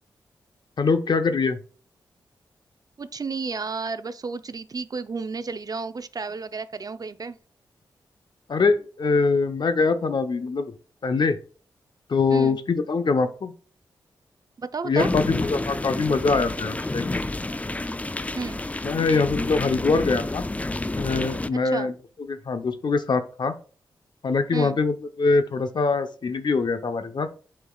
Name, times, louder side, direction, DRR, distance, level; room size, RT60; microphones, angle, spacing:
voice 1, 0.8-1.6 8.5-10.7 11.0-11.4 12.1-13.5 14.8-17.2 18.8-20.4 21.0-21.9 22.3-23.6 24.2-27.3, left 4 dB, 60° left, 0.9 m, -23 dB
voice 2, 3.0-7.4 12.3-12.6 14.6-15.1 18.3-18.6 21.6-21.9 24.5-24.8, right 4 dB, 45° right, 0.6 m, -32 dB
sound 1, 15.0-21.5, left 2 dB, 15° left, 0.4 m, -29 dB
8.2 x 5.8 x 2.4 m
supercardioid pair, 45°, 9 cm